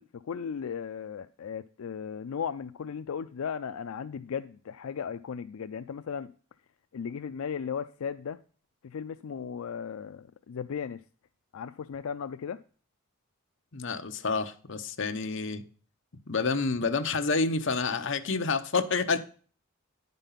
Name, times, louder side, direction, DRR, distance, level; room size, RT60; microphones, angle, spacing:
voice 1, 0.0-6.3 6.9-8.4 8.8-11.0 11.5-12.6, left 7 dB, 80° left, 0.4 m, -36 dB
voice 2, 13.7-15.6 16.3-19.3, left 4 dB, 60° left, 0.8 m, -28 dB
10.0 x 5.3 x 5.6 m
head